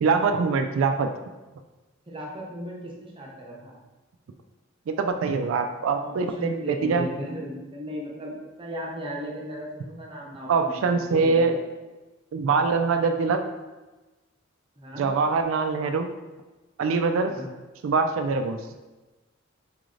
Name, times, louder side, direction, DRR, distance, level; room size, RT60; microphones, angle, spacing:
voice 1, 0.0-1.1 4.9-7.1 10.5-11.6 12.3-13.4 15.0-16.1 16.8-17.3 17.8-18.6, right 4 dB, 65° right, 6 dB, 0.3 m, -23 dB
voice 2, 2.1-3.8 6.0-11.6 14.8-15.1 17.2-17.5, equal, 25° right, -3 dB, 0.7 m, -36 dB
4.6 x 3.1 x 2.5 m, 1.1 s
head